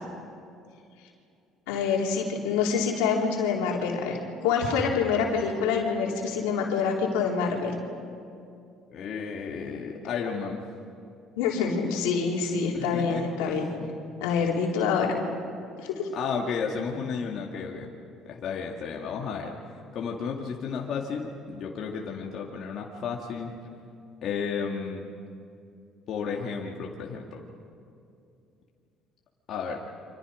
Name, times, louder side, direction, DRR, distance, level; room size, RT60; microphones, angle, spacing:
voice 1, 1.7-7.7 11.4-13.6 14.2-15.1 15.8-16.1, left 5 dB, 85° left, -1 dB, 3.7 m, -26 dB
voice 2, 8.9-10.6 12.7-13.9 16.1-17.9 18.2-19.5 19.9-23.6 24.2-25.1 26.1-27.4 29.5-29.8, left 6 dB, 60° left, -1 dB, 2.4 m, -33 dB
29.5 x 26.0 x 5.2 m, 2.5 s
supercardioid pair, 75°, 0 cm